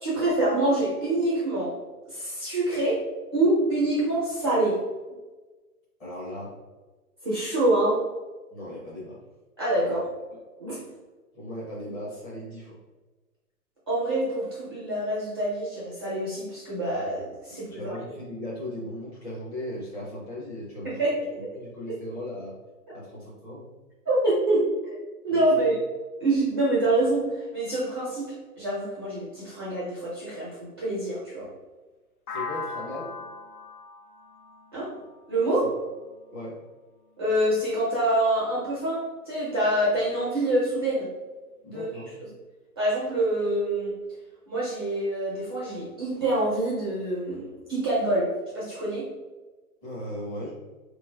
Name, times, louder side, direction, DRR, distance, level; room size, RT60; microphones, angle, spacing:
voice 1, 0.0-1.7 2.1-3.0 3.3-4.8 7.2-8.0 9.6-10.0 10.6-10.8 13.9-18.0 20.8-21.6 21.9-22.0 24.1-24.7 25.2-25.8 26.2-27.2 27.5-31.5 34.7-34.9 35.3-35.7 37.2-41.1 41.7-41.9 42.8-43.9 44.5-49.1, right 1 dB, 20° right, -7 dB, 0.4 m, -26 dB
voice 2, 6.0-6.5 8.5-9.2 9.8-10.0 11.3-12.8 17.5-21.0 21.5-22.5 22.9-23.7 25.3-25.7 32.3-33.1 36.3-36.6 41.6-42.1 49.8-50.5, left 1 dB, 15° left, -6 dB, 0.7 m, -37 dB
sound 1, 32.3-36.2, left 4 dB, 70° left, 0.8 m, -39 dB
3.9 x 3.1 x 2.3 m, 1.2 s
hypercardioid pair, 135°, 46 cm